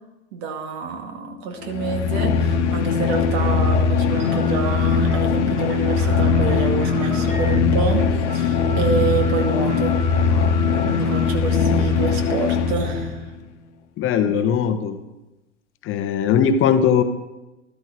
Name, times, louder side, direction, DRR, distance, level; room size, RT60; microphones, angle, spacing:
voice 1, 0.3-9.9 10.8-13.2 14.2-14.4, right 4 dB, 50° right, 3 dB, 2.4 m, -27 dB
sound 1, 1.6-13.3, left 5 dB, 65° left, 1.3 m, -20 dB
sound 2, 4.1-13.0, equal, 70° right, 4.2 m, -38 dB
voice 2, 14.0-15.0 15.8-17.0, left 7 dB, 35° left, 9 dB, 1.0 m, -19 dB
13.0 x 13.0 x 4.1 m, 1.0 s
figure-of-eight pair, 90°, 37 cm